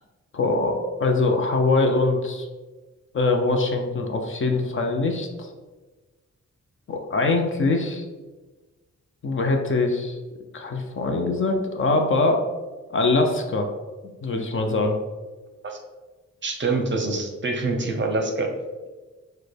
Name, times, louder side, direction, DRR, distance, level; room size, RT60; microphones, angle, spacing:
voice 1, 0.3-2.5 3.1-5.5 6.9-8.0 9.2-10.1 10.5-12.4 12.9-13.7 14.2-15.0, left 3 dB, 45° left, 3 dB, 0.5 m, -23 dB
voice 2, 16.4-18.5, right 3 dB, 40° right, 3 dB, 0.6 m, -25 dB
6.3 x 2.2 x 3.3 m, 1.3 s
wide cardioid pair, 155°, 29 cm